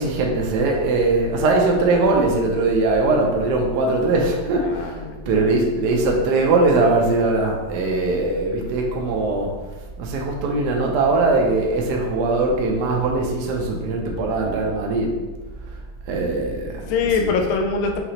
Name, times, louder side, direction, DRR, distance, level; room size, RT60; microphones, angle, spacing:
voice 1, 0.0-5.0 5.3-9.5 10.0-15.1 16.1-16.8, right 3 dB, 70° right, 0 dB, 1.1 m, -20 dB
voice 2, 4.6-5.5 16.8-18.0, left 5 dB, 80° left, 2 dB, 0.8 m, -23 dB
5.7 x 3.0 x 2.9 m, 1.3 s
omnidirectional pair, 2.2 m